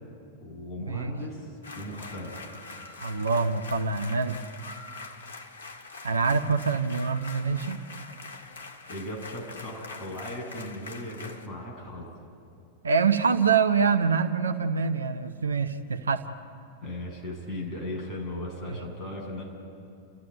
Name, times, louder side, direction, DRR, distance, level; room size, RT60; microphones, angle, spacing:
voice 1, 0.4-2.4 8.9-12.1 16.8-19.4, left 1 dB, 25° left, -2 dB, 7.8 m, -37 dB
sound 1, 1.6-11.5, left 3 dB, 65° left, 1.8 m, -44 dB
voice 2, 3.0-4.4 6.0-7.8 12.8-16.2 18.7-18.8, right 5 dB, 75° right, 9 dB, 1.0 m, -25 dB
29.5 x 14.5 x 9.7 m, 2.6 s
figure-of-eight pair, 90°, 0 cm